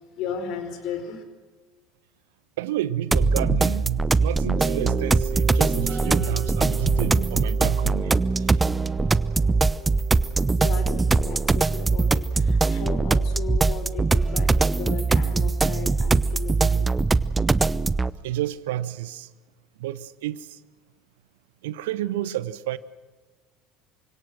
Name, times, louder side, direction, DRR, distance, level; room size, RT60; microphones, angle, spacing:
voice 1, 0.2-1.2 10.6-16.9, left 6 dB, 50° left, 4.9 m, -35 dB
voice 2, 2.6-8.6 18.2-19.3 19.8-20.6 21.6-22.8, right 13 dB, 65° right, 0.9 m, -30 dB
sound 1, 3.1-18.1, right 3 dB, 15° right, 0.7 m, -22 dB
Mallet percussion, 4.6-13.2, right 9 dB, 45° right, 1.4 m, -39 dB
29.5 x 25.5 x 6.2 m
figure-of-eight pair, 65°, 0 cm